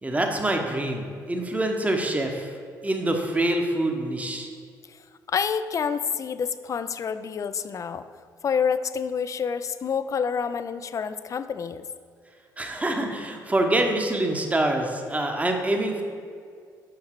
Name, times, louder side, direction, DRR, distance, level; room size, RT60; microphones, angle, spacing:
voice 1, 0.0-2.5 2.8-4.5 12.6-16.0, right 1 dB, 15° right, 2 dB, 0.9 m, -25 dB
voice 2, 5.3-8.0 8.4-11.8, left 6 dB, 35° left, 12 dB, 0.4 m, -28 dB
6.6 x 5.6 x 4.5 m, 2.1 s
figure-of-eight pair, 45°, 10 cm